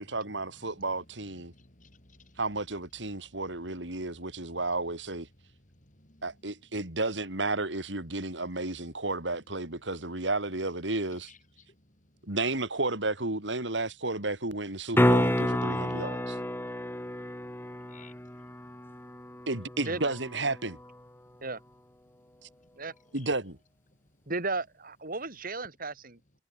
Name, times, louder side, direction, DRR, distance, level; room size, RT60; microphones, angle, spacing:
voice 1, 0.0-1.5 2.4-5.3 6.2-11.3 12.2-16.4 19.5-20.8 22.4-22.5 23.1-23.6, right 2 dB, 80° right, 4.8 m, -32 dB
voice 2, 1.5-2.4 5.8-6.2 11.3-11.4 11.7-12.2 17.9-18.2 22.6-22.7 23.1-23.3, left 4 dB, 45° left, 7.8 m, -57 dB
sound 1, 14.9-21.0 25.6-25.7, left 1 dB, 10° left, 2.9 m, -30 dB
voice 3, 24.3-26.2, right 3 dB, 50° right, 4.5 m, -34 dB
head